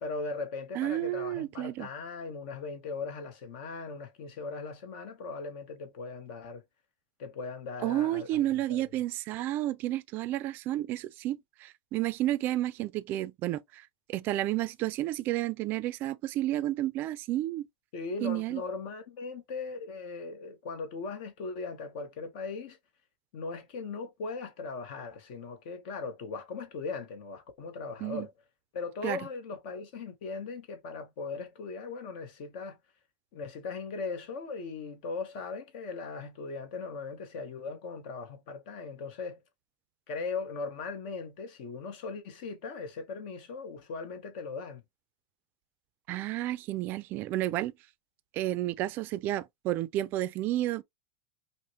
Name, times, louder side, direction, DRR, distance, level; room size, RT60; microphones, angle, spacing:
voice 1, 0.0-6.6 7.2-8.4 17.9-22.8 23.3-28.3 28.7-32.8 33.3-39.4 40.1-44.8, left 4 dB, 60° left, 1.0 m, -39 dB
voice 2, 0.7-1.9 7.8-17.7 18.2-18.6 28.0-28.3 29.0-29.2 46.1-47.7 48.3-50.8, right 14 dB, 40° right, 0.4 m, -31 dB
5.5 x 2.1 x 2.8 m
supercardioid pair, 145°, 5 cm